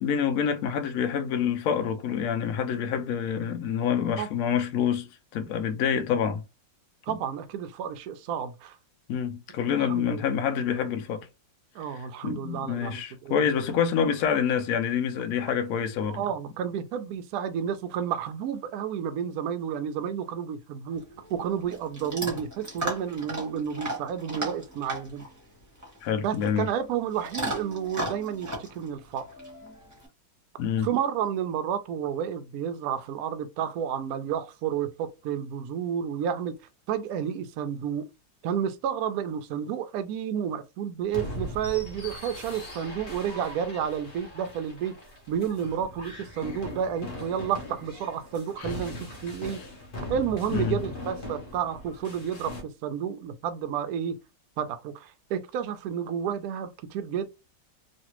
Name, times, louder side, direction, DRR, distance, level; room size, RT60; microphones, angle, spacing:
voice 1, 0.0-5.1 5.3-6.4 7.1-7.2 9.1-11.3 11.9-16.2 26.0-26.7 30.6-30.9 48.6-48.7 50.5-50.8, left 7 dB, 70° left, 0.8 m, -27 dB
voice 2, 7.0-8.8 9.7-10.2 11.7-13.4 16.1-21.0 21.3-25.2 26.2-29.3 30.8-36.6 36.9-38.1 38.4-45.0 45.3-49.6 50.1-54.2 54.6-57.3, right 8 dB, 75° right, 0.8 m, -31 dB
Chewing mastication / Dog, 20.9-30.1, right 1 dB, 15° right, 0.8 m, -37 dB
sound 1, 41.1-52.6, left 1 dB, 40° left, 0.8 m, -40 dB
3.2 x 2.5 x 2.9 m
omnidirectional pair, 2.0 m